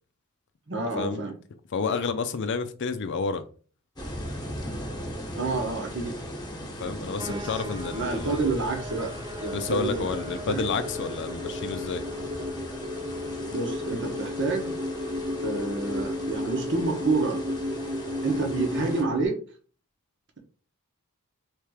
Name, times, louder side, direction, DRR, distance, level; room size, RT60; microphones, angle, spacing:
voice 1, 0.7-1.4 5.3-6.2 7.2-9.1 9.4-10.0 10.5-10.7 13.5-14.8 15.4-17.4 18.2-19.4, right 3 dB, 55° right, 3 dB, 1.3 m, -29 dB
voice 2, 1.7-3.4 6.8-8.3 9.5-12.0, left 5 dB, 55° left, 10 dB, 0.5 m, -30 dB
sound 1, 4.0-19.0, equal, 20° left, 1.2 m, -39 dB
sound 2, 7.2-19.3, left 1 dB, 20° right, 0.4 m, -34 dB
3.4 x 3.2 x 4.8 m, 0.40 s
head